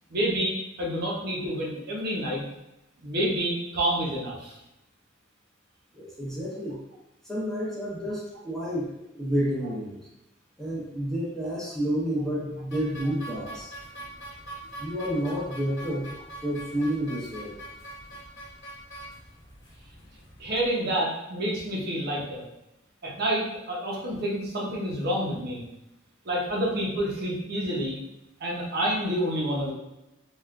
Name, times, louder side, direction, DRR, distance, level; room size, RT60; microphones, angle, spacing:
voice 1, 0.1-2.4 3.0-4.6 20.4-22.4 23.0-25.6 26.2-28.0 28.4-29.7, right 1 dB, 55° right, -3 dB, 0.7 m, -28 dB
voice 2, 5.9-6.8 7.2-10.0 10.6-13.7 14.8-16.1 16.4-17.5, equal, 5° left, -7 dB, 0.8 m, -30 dB
sound 1, 12.7-20.6, right 1 dB, 60° left, 0.9 m, -43 dB
3.5 x 2.4 x 2.3 m, 0.93 s
head